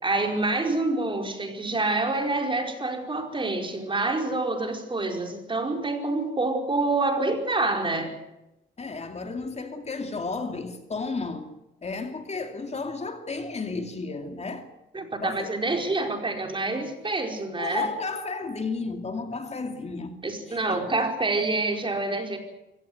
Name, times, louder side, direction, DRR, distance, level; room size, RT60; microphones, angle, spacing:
voice 1, 0.0-8.1 14.9-17.9 20.2-22.4, right 2 dB, 25° right, 4.9 m, -27 dB
voice 2, 8.8-11.5 11.8-14.7 15.2-15.9 17.6-21.0, left 4 dB, 35° left, 2.6 m, -33 dB
23.5 x 18.0 x 8.0 m
cardioid pair, 90°, 20 cm